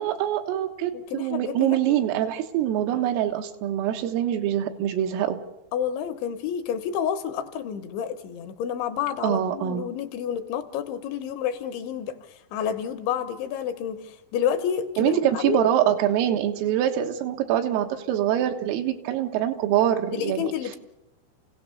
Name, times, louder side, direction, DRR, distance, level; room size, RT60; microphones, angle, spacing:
voice 1, 0.0-5.4 9.2-9.9 15.0-20.5, right 11 dB, 85° right, 5 dB, 4.0 m, -24 dB
voice 2, 0.9-2.0 5.7-15.6 20.1-20.8, left 8 dB, 75° left, 9 dB, 3.2 m, -29 dB
29.0 x 17.0 x 7.0 m, 0.96 s
omnidirectional pair, 5.8 m